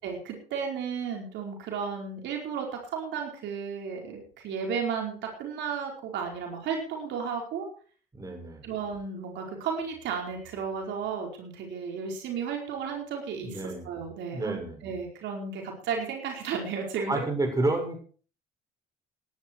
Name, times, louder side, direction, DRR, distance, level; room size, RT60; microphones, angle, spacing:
voice 1, 0.0-7.7 8.6-17.3, right 6 dB, 70° right, 1 dB, 4.8 m, -34 dB
voice 2, 8.1-8.6 13.4-13.9 14.3-14.8 17.1-18.0, right 2 dB, 20° right, 4 dB, 6.3 m, -29 dB
18.0 x 12.0 x 4.7 m, 0.42 s
supercardioid pair, 95°, 19 cm